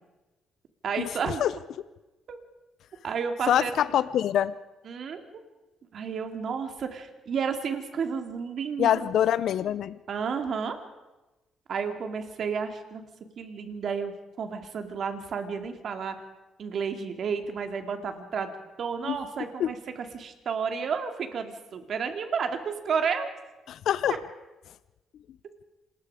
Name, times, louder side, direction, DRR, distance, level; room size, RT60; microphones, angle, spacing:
voice 1, 0.8-1.4 2.3-2.4 3.0-3.7 4.9-5.2 5.9-9.1 10.1-10.8 11.7-13.0 13.4-16.1 16.6-19.8 20.1-23.3, right 6 dB, 60° right, 6 dB, 2.7 m, -31 dB
voice 2, 3.5-4.5 8.8-10.0 19.0-19.2 19.6-19.7 23.7-24.2, left 10 dB, 75° left, 15 dB, 0.6 m, -24 dB
27.0 x 21.0 x 5.0 m, 1.1 s
cardioid pair, 90°, 0 cm